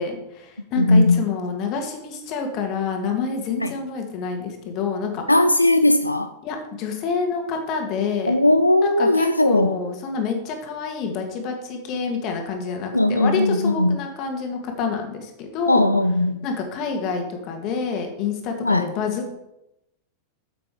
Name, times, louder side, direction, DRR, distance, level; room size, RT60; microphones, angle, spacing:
voice 1, 0.0-5.2 6.4-8.4 8.8-15.9 16.4-19.4, left 5 dB, 40° left, 2.1 m, -27 dB
voice 2, 0.8-1.3 3.6-3.7 5.3-6.3 8.3-9.8 12.9-14.0 15.7-16.5 18.6-18.9, left 1 dB, 85° left, 0.4 m, -18 dB
8.7 x 7.5 x 5.0 m
figure-of-eight pair, 90°, 0 cm